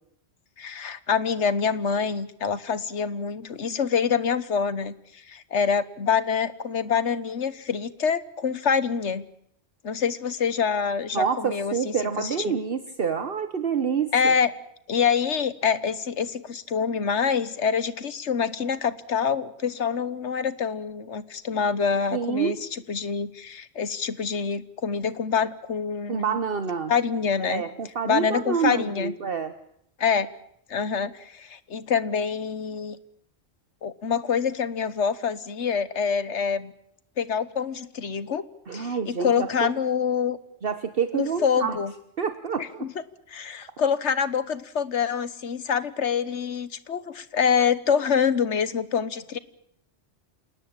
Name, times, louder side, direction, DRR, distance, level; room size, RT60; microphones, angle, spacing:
voice 1, 0.6-9.3 9.8-12.6 14.1-14.5 14.9-26.3 26.9-27.6 28.0-29.1 30.0-30.3 30.7-33.0 33.8-36.7 37.2-38.4 38.7-40.4 41.1-41.9 42.6-42.9 43.3-49.4, left 6 dB, 85° left, 15 dB, 1.5 m, -26 dB
voice 2, 11.1-14.3 22.1-22.6 26.1-26.9 27.4-29.5 38.7-39.7 40.6-41.8 42.2-42.9, right 6 dB, 55° right, 9 dB, 1.3 m, -27 dB
27.5 x 19.0 x 8.8 m, 0.72 s
omnidirectional pair, 1.1 m